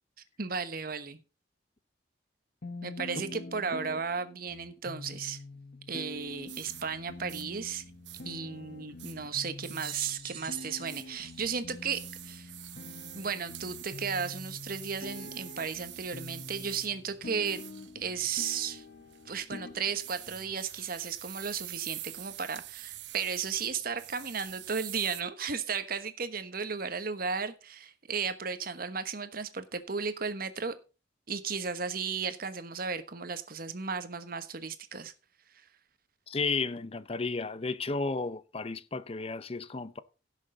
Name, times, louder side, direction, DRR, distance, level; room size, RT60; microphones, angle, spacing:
voice 1, 0.4-1.2 2.8-5.4 5.9-7.8 8.2-12.5 13.1-17.6 17.9-18.8 19.2-30.7 31.3-35.1, right 5 dB, 55° right, 1.2 m, -35 dB
sound 1, 2.6-20.6, left 2 dB, 60° left, 1.2 m, -46 dB
sound 2, 6.1-25.2, right 15 dB, 75° right, 0.8 m, -47 dB
sound 3, 9.8-12.4 13.1-13.2 14.4-14.5, right 8 dB, 30° right, 2.2 m, -44 dB
voice 2, 36.3-40.0, left 3 dB, 35° left, 0.6 m, -33 dB
16.5 x 6.5 x 3.9 m
head